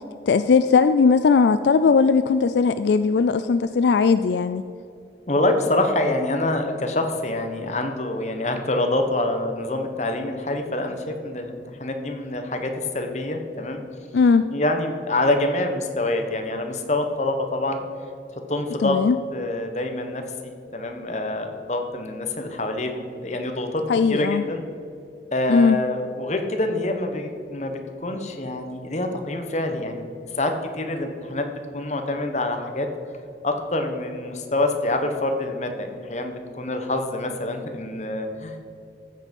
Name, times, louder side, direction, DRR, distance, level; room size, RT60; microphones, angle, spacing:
voice 1, 0.3-4.6 14.1-14.5 18.8-19.2 23.9-24.4 25.5-25.8, left 5 dB, 75° left, 11 dB, 0.4 m, -18 dB
voice 2, 5.3-13.8 14.5-17.8 18.5-19.0 19.3-24.6 25.3-30.1 30.3-32.9 33.4-38.6, left 2 dB, 40° left, 5 dB, 1.2 m, -26 dB
14.0 x 7.6 x 5.4 m, 2.6 s
head